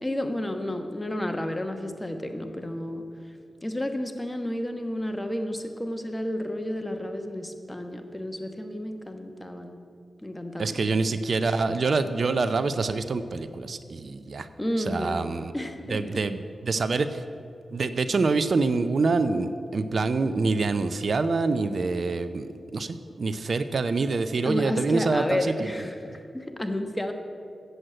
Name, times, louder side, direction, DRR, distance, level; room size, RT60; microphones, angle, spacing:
voice 1, 0.0-3.1 3.6-9.8 10.2-10.8 14.6-15.2 15.5-16.2 24.4-27.1, left 1 dB, 15° left, 6 dB, 1.2 m, -31 dB
voice 2, 10.6-14.5 14.8-15.5 15.9-17.2 17.7-25.7, right 3 dB, 65° right, 11 dB, 0.5 m, -26 dB
8.0 x 7.8 x 8.8 m, 2.4 s
cardioid pair, 55°, 0 cm